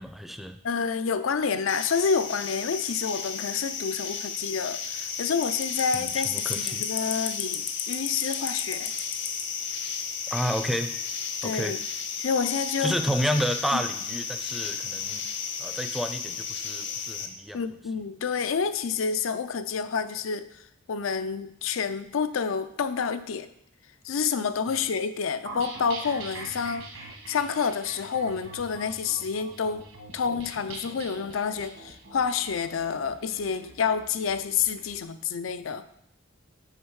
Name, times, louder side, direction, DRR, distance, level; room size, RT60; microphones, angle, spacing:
voice 1, 0.0-0.6 5.9-6.8 10.3-11.0 11.4-11.8 12.8-15.3 15.6-17.6, equal, ahead, 8 dB, 0.4 m, -30 dB
voice 2, 0.6-8.9 11.4-11.8 12.2-13.0 13.7-13.8 17.5-20.6 20.9-23.5 24.0-26.9 27.3-29.9 30.1-35.9, left 6 dB, 85° left, 12 dB, 0.5 m, -28 dB
sound 1, 1.7-17.3, left 6 dB, 65° left, 0.8 m, -33 dB
sound 2, 25.5-34.9, right 3 dB, 80° right, 1.5 m, -43 dB
6.6 x 5.2 x 4.8 m, 0.78 s
head